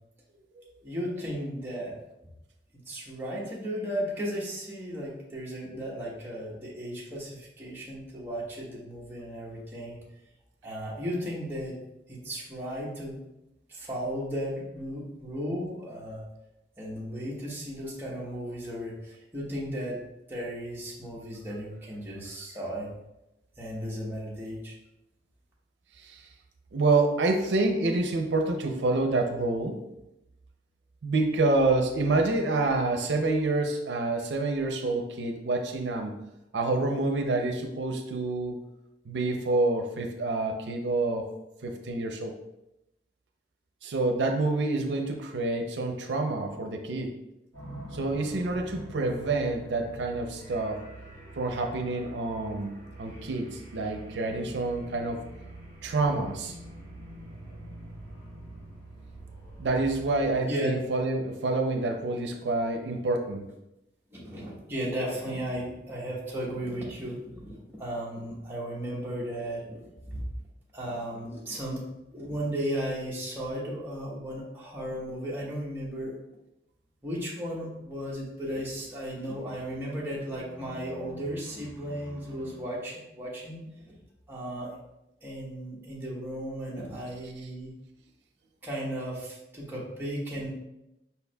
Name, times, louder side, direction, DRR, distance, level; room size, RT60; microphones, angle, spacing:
voice 1, 0.8-2.0 2.9-10.0 10.6-11.8 12.1-13.2 13.7-16.2 16.8-20.0 20.3-22.9 23.6-24.7 60.5-60.7 64.1-70.2 70.7-71.8 72.1-76.1 77.0-83.6 84.3-84.8 85.2-87.7 88.6-90.5, equal, 10° right, -6 dB, 1.0 m, -35 dB
voice 2, 26.7-29.8 31.0-36.1 36.5-38.7 39.1-41.3 41.6-42.3 43.8-47.1 47.9-50.8 51.4-52.7 53.0-55.2 55.8-56.6 59.6-63.5, right 2 dB, 85° right, 4 dB, 0.5 m, -27 dB
sound 1, 47.5-60.3, right 1 dB, 15° left, 1.7 m, -45 dB
5.2 x 4.5 x 2.2 m, 0.90 s
head